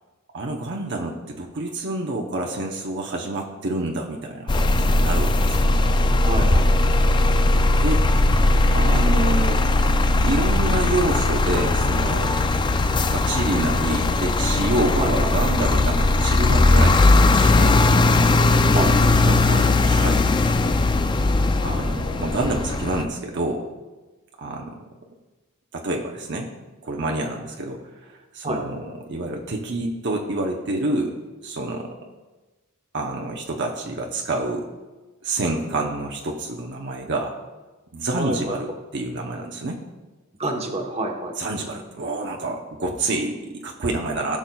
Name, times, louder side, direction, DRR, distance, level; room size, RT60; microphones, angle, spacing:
voice 1, 0.3-5.6 7.8-8.0 8.7-9.6 10.2-12.4 13.1-17.8 19.8-20.3 21.6-23.7 24.4-24.8 25.7-26.5 26.8-31.1 31.4-31.9 32.9-34.7 35.2-37.3 37.9-39.8 41.4-44.4, right 2 dB, 60° right, 1 dB, 0.8 m, -27 dB
sound 1, 4.5-23.0, left 2 dB, 20° left, 0.3 m, -19 dB
voice 2, 6.3-6.7 15.0-15.3 18.7-19.6 28.4-28.6 38.2-38.5 40.4-41.4, right 1 dB, 30° right, 2 dB, 1.1 m, -27 dB
17.0 x 6.0 x 2.3 m, 1.2 s
head